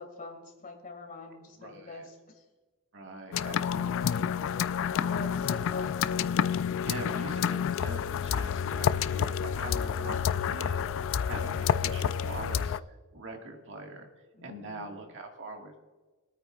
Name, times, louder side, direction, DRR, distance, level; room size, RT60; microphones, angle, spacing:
voice 1, 0.0-2.4 4.5-4.7 5.1-6.1 14.4-14.9, left 2 dB, 40° left, 2 dB, 2.1 m, -44 dB
voice 2, 1.6-2.1 2.9-4.2 4.8-5.5 6.7-12.8 13.1-14.1 14.4-15.8, right 2 dB, 60° right, 3 dB, 1.7 m, -43 dB
sound 1, 3.3-12.8, left 8 dB, 60° left, 0.4 m, -29 dB
23.0 x 9.1 x 2.4 m, 1.3 s
head